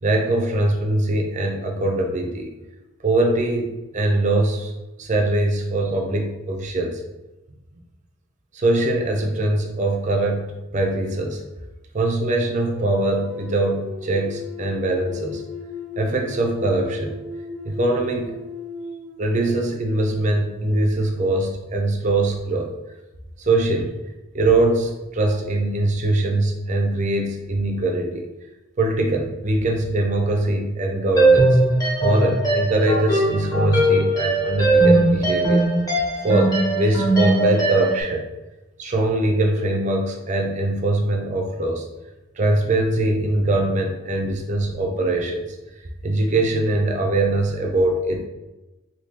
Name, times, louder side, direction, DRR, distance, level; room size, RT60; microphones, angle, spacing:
voice 1, 0.0-2.6 3.0-4.7 5.0-7.0 8.5-11.4 11.9-15.4 16.0-17.2 17.6-18.4 19.2-22.7 23.4-23.9 24.3-28.3 28.8-31.6 32.0-35.7 36.2-38.3 38.8-41.9 42.4-45.5 46.0-48.3, right 2 dB, 40° right, 2 dB, 0.5 m, -22 dB
sound 1, 12.6-19.9, left 3 dB, 85° left, 1.4 m, -36 dB
sound 2, 31.2-38.0, right 2 dB, 20° left, 0.8 m, -19 dB
3.5 x 2.7 x 2.8 m, 1.1 s
head